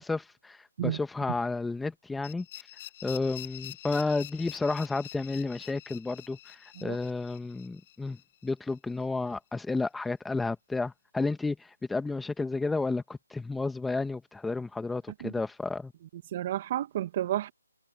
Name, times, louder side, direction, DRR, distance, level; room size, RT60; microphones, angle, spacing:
voice 1, 0.0-2.5 3.0-8.2 8.4-15.9, left 3 dB, 5° left, 1.8 m, -32 dB
sound 1, 2.2-9.0, left 15 dB, 30° left, 2.2 m, -47 dB
voice 2, 16.3-17.5, right 12 dB, 35° right, 2.1 m, -31 dB
figure-of-eight pair, 150°, 0 cm